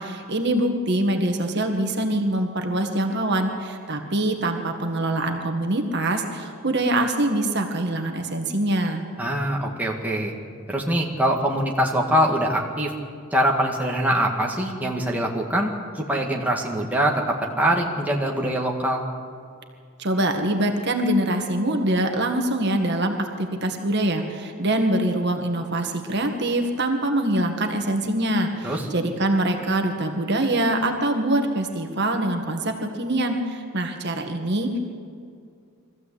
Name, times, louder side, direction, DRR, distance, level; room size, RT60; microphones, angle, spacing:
voice 1, 0.0-9.0 20.0-34.8, right 1 dB, 50° right, 4 dB, 1.8 m, -24 dB
voice 2, 9.2-10.3 10.7-12.9 13.3-19.1 28.6-28.9, equal, 5° right, -1 dB, 2.1 m, -23 dB
23.0 x 15.0 x 8.5 m, 2.3 s
head